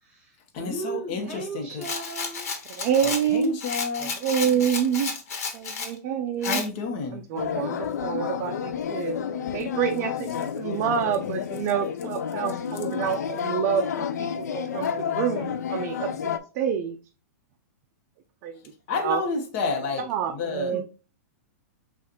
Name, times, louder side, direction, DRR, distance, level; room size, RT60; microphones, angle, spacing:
voice 1, 0.0-2.5 4.4-4.7 20.7-20.8, right 3 dB, 10° right, -1 dB, 2.0 m, -37 dB
voice 2, 0.5-1.8 3.0-4.1 6.4-7.2 18.9-20.8, left 4 dB, 45° left, 2 dB, 1.0 m, -30 dB
Rattle, 1.8-5.9 6.4-6.7, left 5 dB, 65° left, 1.2 m, -32 dB
voice 3, 2.8-3.5 4.0-5.1 5.5-6.6 7.1-9.2 9.5-17.0 18.4-18.6 19.0-19.2 20.1-20.8, right 8 dB, 40° right, 4 dB, 0.4 m, -27 dB
Tibetan buddhist chant, 7.4-16.4, left 8 dB, 85° left, 0.4 m, -30 dB
6.3 x 2.4 x 2.9 m, 0.34 s
hypercardioid pair, 145°, 9 cm